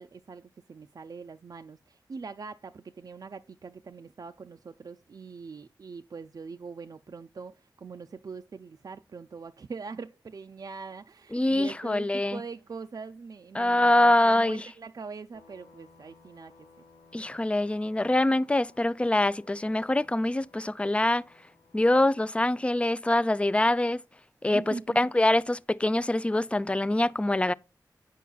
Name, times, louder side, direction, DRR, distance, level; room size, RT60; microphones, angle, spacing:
voice 1, 0.0-16.7 24.4-25.1, right 4 dB, 50° right, 0.4 m, -42 dB
voice 2, 11.3-12.4 13.6-14.6 17.1-21.2 21.7-24.0 24.4-27.5, left 1 dB, 15° left, 0.4 m, -24 dB
sound 1, 15.3-23.5, left 4 dB, 65° left, 1.3 m, -59 dB
8.3 x 5.5 x 2.3 m
cardioid pair, 40°, 8 cm